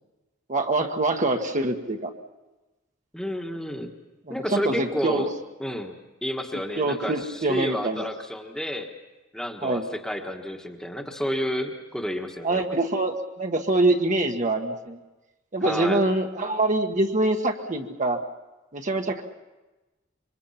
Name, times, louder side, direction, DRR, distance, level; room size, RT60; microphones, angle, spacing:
voice 1, 0.5-2.1 4.3-5.2 6.8-8.1 9.6-9.9 12.4-15.0 15.5-18.2 18.7-19.2, right 2 dB, 40° right, 3 dB, 1.4 m, -25 dB
voice 2, 3.1-3.9 4.3-5.3 5.6-6.0 6.2-8.9 9.3-12.6 15.6-16.0, equal, 5° left, 2 dB, 1.5 m, -30 dB
26.0 x 24.0 x 5.8 m, 1.1 s
head